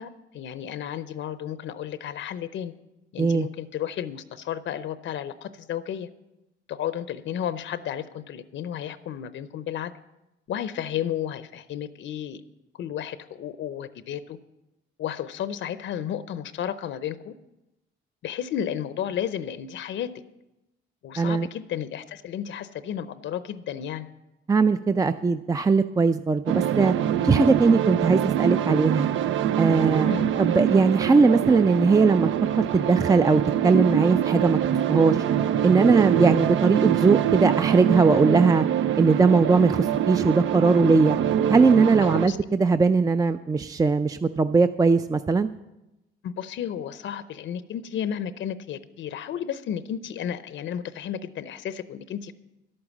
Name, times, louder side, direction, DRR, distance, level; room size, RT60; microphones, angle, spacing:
voice 1, 0.0-2.7 3.1-6.1 6.7-9.9 10.5-12.4 12.8-14.4 15.0-17.3 18.2-20.1 21.0-24.1 30.0-30.4 42.0-42.4 46.2-52.3, left 9 dB, 70° left, 13 dB, 0.7 m, -32 dB
voice 2, 21.2-21.5 24.5-26.9 27.2-29.1 29.6-30.1 30.4-32.3 32.6-34.6 34.9-35.2 35.6-38.6 39.0-41.2 41.5-45.5, right 4 dB, 20° right, 11 dB, 0.4 m, -20 dB
sound 1, 26.5-42.3, right 10 dB, 75° right, 0.6 m, -24 dB
11.5 x 8.7 x 7.2 m, 0.95 s
cardioid pair, 90°, 20 cm